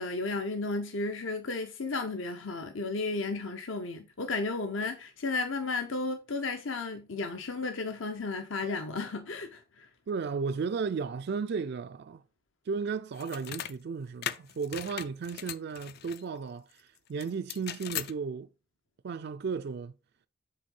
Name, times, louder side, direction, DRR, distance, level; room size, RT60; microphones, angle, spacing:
voice 1, 0.0-9.9, left 3 dB, 65° left, 0.8 m, -33 dB
voice 2, 10.1-12.2 12.7-18.5 19.0-19.9, right 5 dB, 55° right, 0.3 m, -34 dB
sound 1, 13.1-13.7 14.2-16.2 17.2-18.1, left 10 dB, 50° left, 0.4 m, -38 dB
7.7 x 3.5 x 5.4 m
head